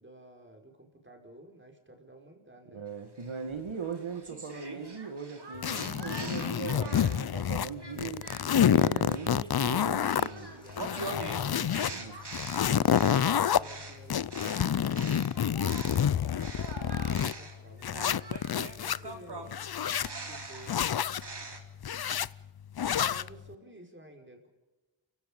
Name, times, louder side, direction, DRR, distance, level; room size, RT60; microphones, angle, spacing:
voice 1, 0.0-2.9 10.3-11.9 13.2-18.1 18.8-19.6 20.2-20.9 22.9-24.5, right 1 dB, 25° right, 2 dB, 5.5 m, -53 dB
voice 2, 2.7-8.3 8.6-10.6 11.3-12.2, right 5 dB, 75° right, 5 dB, 2.1 m, -39 dB
sound 1, 3.2-7.3 7.8-16.1 16.4-21.6, right 3 dB, 55° right, 3.5 m, -43 dB
sound 2, 5.6-7.7 8.0-10.3 10.7-11.9 12.3-13.6 14.1-17.3 17.8-19.0 19.5-20.1 20.7-21.2 21.8-22.3 22.8-23.3, left 9 dB, 50° left, 0.6 m, -28 dB
Scratching (performance technique), 8.7-10.8 11.3-13.4, left 1 dB, 10° left, 3.9 m, -58 dB
29.5 x 16.5 x 5.5 m, 1.2 s
cardioid pair, 45°, 49 cm